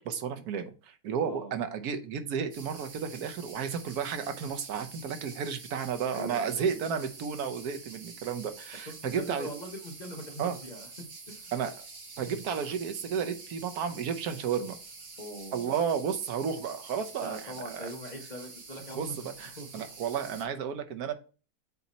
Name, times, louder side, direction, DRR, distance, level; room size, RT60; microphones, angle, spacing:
voice 1, 0.0-9.5 10.4-10.6 11.5-11.8 12.2-14.8 15.5-17.9 19.0-21.1, right 7 dB, 80° right, 7 dB, 1.3 m, -32 dB
voice 2, 1.2-1.5 6.1-6.8 8.9-11.5 15.2-15.7 17.2-19.2 19.6-19.7, equal, 35° left, 2 dB, 1.0 m, -42 dB
sound 1, 2.5-20.5, right 4 dB, 50° right, 1.4 m, -47 dB
8.2 x 2.8 x 4.1 m, 0.35 s
omnidirectional pair, 1.6 m